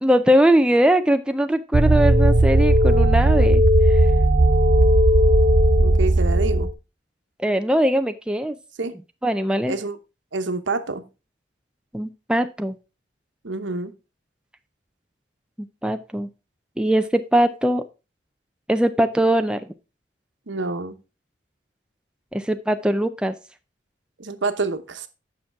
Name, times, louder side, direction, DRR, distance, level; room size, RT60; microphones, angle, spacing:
voice 1, 0.0-4.1 7.4-8.6 9.2-9.7 11.9-12.8 15.6-16.3 16.8-17.8 18.7-19.7 22.3-23.4, right 1 dB, 5° right, 8 dB, 0.4 m, -21 dB
sound 1, 1.7-6.7, right 1 dB, 45° right, 0.6 m, -16 dB
voice 2, 5.8-6.7 8.8-8.9 9.7-10.0 10.3-11.1 13.4-13.9 20.5-21.0 24.2-25.1, right 3 dB, 85° right, 9 dB, 1.0 m, -27 dB
8.8 x 5.9 x 4.6 m, 0.29 s
head